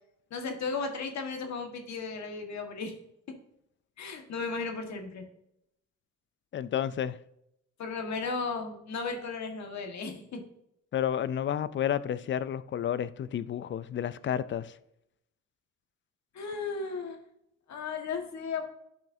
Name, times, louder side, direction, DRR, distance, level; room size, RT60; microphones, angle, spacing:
voice 1, 0.3-2.9 4.0-5.2 7.8-10.4 16.3-17.2 17.7-18.6, left 4 dB, 65° left, 1.6 m, -35 dB
voice 2, 6.5-7.2 10.9-14.7, left 9 dB, 40° left, 0.4 m, -31 dB
10.5 x 5.8 x 2.7 m
cardioid pair, 90°, 30 cm